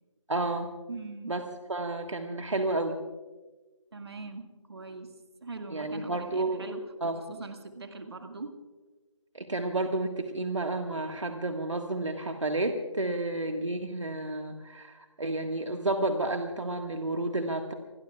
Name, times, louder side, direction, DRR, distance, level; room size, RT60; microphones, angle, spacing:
voice 1, 0.3-0.7 1.3-1.4 1.7-3.0 5.7-6.7 7.0-7.2 9.3-17.7, right 2 dB, 65° right, 5 dB, 1.6 m, -31 dB
voice 2, 0.9-1.4 3.9-5.1 5.4-8.5, right 3 dB, 50° right, 5 dB, 1.9 m, -41 dB
28.5 x 21.0 x 2.4 m, 1.2 s
figure-of-eight pair, 155°, 17 cm